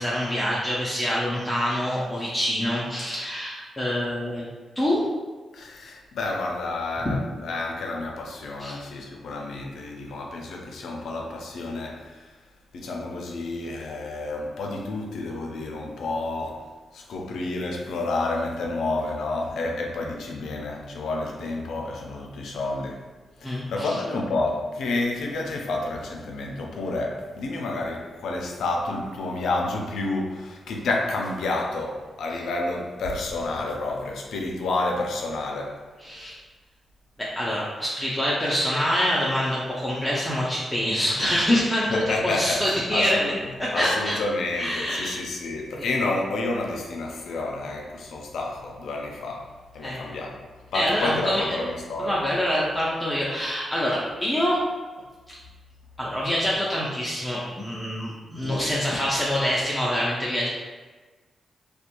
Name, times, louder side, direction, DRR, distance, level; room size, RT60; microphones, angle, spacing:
voice 1, 0.0-4.5 4.8-5.0 7.0-7.1 8.6-8.8 23.4-24.0 36.0-36.4 37.2-43.2 43.6-44.2 44.5-45.1 45.8-45.9 49.8-50.1 50.7-51.6 52.0-54.6 55.3-55.4 56.0-60.5, equal, 10° left, -7 dB, 0.4 m, -25 dB
voice 2, 5.5-12.3 12.7-16.6 16.9-23.0 23.4-35.7 41.9-43.3 43.7-50.4 50.7-52.2 58.4-58.7, left 2 dB, 85° left, 0 dB, 0.4 m, -30 dB
2.4 x 2.2 x 2.8 m, 1.3 s
cardioid pair, 100°, 0 cm